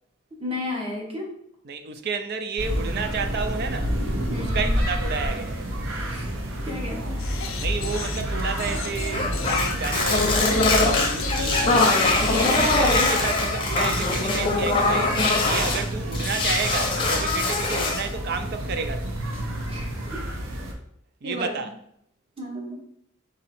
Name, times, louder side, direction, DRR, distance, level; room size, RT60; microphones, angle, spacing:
voice 1, 0.4-1.4 4.3-4.7 6.1-6.3 6.6-7.2 12.3-12.7 19.7-19.9 21.2-21.6 22.4-22.8, left 2 dB, 30° right, 1.1 m, -33 dB
voice 2, 1.7-4.0 4.4-5.7 7.6-12.0 12.3-19.2 21.2-21.7, right 5 dB, 55° right, 0.5 m, -31 dB
sound 1, 2.6-20.7, equal, 90° right, 0.8 m, -30 dB
sound 2, 7.2-13.0, left 2 dB, 85° left, 0.6 m, -30 dB
sound 3, 9.1-15.8 16.1-18.1, left 3 dB, 25° left, 0.7 m, -22 dB
4.1 x 2.7 x 4.2 m
head